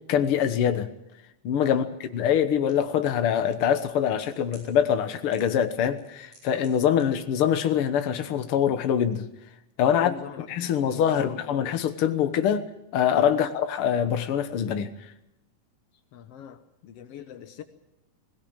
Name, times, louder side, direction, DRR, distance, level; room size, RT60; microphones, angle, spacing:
voice 1, 0.1-0.9 1.4-1.8 2.1-9.3 9.8-12.6 12.9-14.9, left 9 dB, 70° left, 8 dB, 1.3 m, -24 dB
sound 1, 2.7-2.8 3.7-4.7 5.3-5.7 6.0-7.0 7.3-7.4, right 1 dB, 40° right, 7.4 m, -53 dB
voice 2, 9.9-10.5 10.8-11.7 13.3-13.5 16.1-17.6, left 9 dB, 90° left, 9 dB, 1.3 m, -42 dB
21.5 x 17.0 x 8.8 m, 0.88 s
omnidirectional pair, 4.2 m